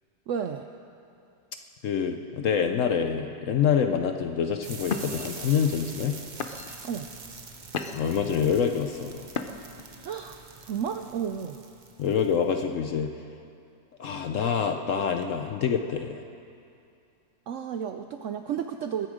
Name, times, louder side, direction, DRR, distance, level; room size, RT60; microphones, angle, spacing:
voice 1, 0.3-0.7 6.8-7.1 10.0-10.4 10.7-11.6 17.5-19.1, right 8 dB, 75° right, 7 dB, 0.7 m, -32 dB
voice 2, 1.8-6.2 7.9-9.2 12.0-13.1 14.0-16.3, left 7 dB, 65° left, 6 dB, 0.8 m, -26 dB
sound 1, 4.0-4.3 4.8-5.3 5.9-6.1 6.4-6.9 7.4-8.2 9.3-9.8, left 5 dB, 80° left, 0.4 m, -34 dB
sound 2, 4.6-12.5, right 4 dB, 35° right, 0.8 m, -44 dB
22.5 x 9.8 x 5.0 m, 2.5 s
omnidirectional pair, 1.8 m